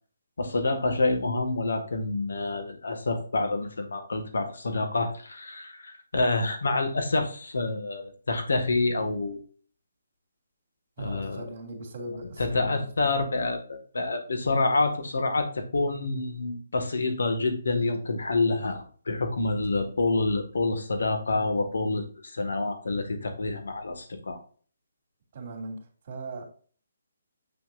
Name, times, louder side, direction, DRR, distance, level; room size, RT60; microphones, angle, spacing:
voice 1, 0.4-9.4 11.0-11.4 12.4-24.4, left 3 dB, 85° left, 1.6 m, -27 dB
voice 2, 11.0-13.1 25.3-26.4, right 2 dB, 35° right, 2.8 m, -39 dB
7.9 x 6.4 x 2.5 m
hypercardioid pair, 170°, 0 cm